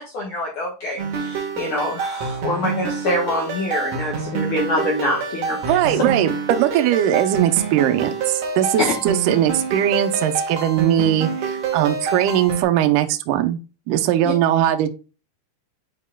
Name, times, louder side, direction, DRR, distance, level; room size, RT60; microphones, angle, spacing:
voice 1, 0.0-5.8 8.8-8.9, left 1 dB, 65° left, -1 dB, 2.2 m, -25 dB
sound 1, 1.0-12.6, right 5 dB, 55° right, 1.9 m, -27 dB
voice 2, 5.6-13.6 13.9-14.9, right 11 dB, 85° right, 7 dB, 1.8 m, -20 dB
9.6 x 4.8 x 2.2 m, 0.32 s
omnidirectional pair, 4.8 m